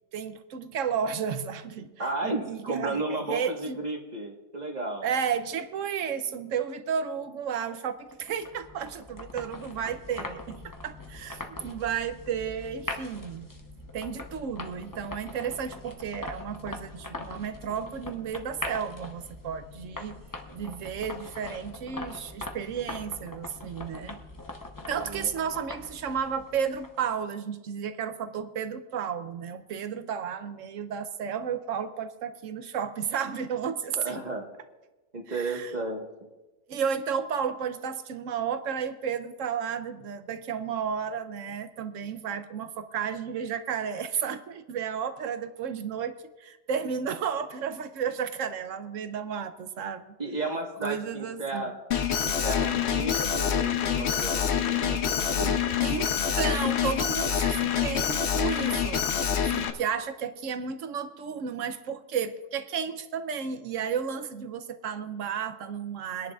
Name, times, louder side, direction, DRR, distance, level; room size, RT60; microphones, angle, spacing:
voice 1, 0.1-3.8 5.0-13.5 13.9-20.2 20.5-24.2 24.9-34.2 35.3-35.9 36.7-50.1 50.8-51.8 55.8-59.0 59.4-66.3, right 7 dB, 65° right, 10 dB, 0.9 m, -33 dB
voice 2, 2.0-5.1 24.8-25.3 33.9-34.5 35.1-36.1 50.2-51.7 52.2-55.6, right 2 dB, 25° right, 1 dB, 1.3 m, -33 dB
sound 1, 8.1-27.1, left 2 dB, 25° left, 0.4 m, -42 dB
Alarm, 51.9-59.7, left 8 dB, 60° left, 0.8 m, -26 dB
24.0 x 10.5 x 2.4 m, 1.1 s
omnidirectional pair, 1.7 m